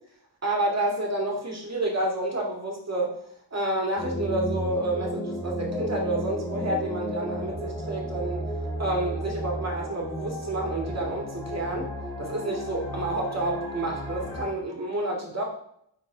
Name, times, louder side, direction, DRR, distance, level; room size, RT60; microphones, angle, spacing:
voice 1, 0.4-3.2 3.5-8.4 8.8-11.9 12.2-15.4, right 1 dB, 35° right, -1 dB, 2.2 m, -29 dB
sound 1, 4.0-14.5, equal, 10° left, 1.8 m, -33 dB
10.5 x 3.9 x 3.8 m, 0.71 s
wide cardioid pair, 105°, 44 cm